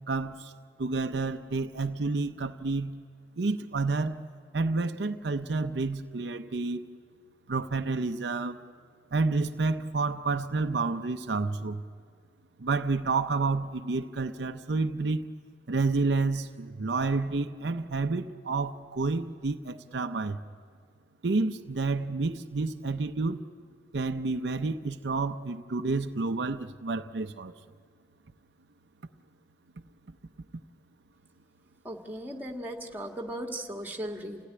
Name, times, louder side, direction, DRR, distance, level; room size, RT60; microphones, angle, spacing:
voice 1, 0.1-0.5 0.8-3.0 3.4-4.2 4.5-6.8 7.5-8.6 9.1-11.8 12.6-15.3 15.7-20.4 21.2-23.4 23.9-27.6, right 3 dB, 70° right, 0.6 m, -29 dB
voice 2, 31.8-34.5, right 1 dB, 10° right, 1.7 m, -37 dB
28.5 x 16.5 x 10.0 m
head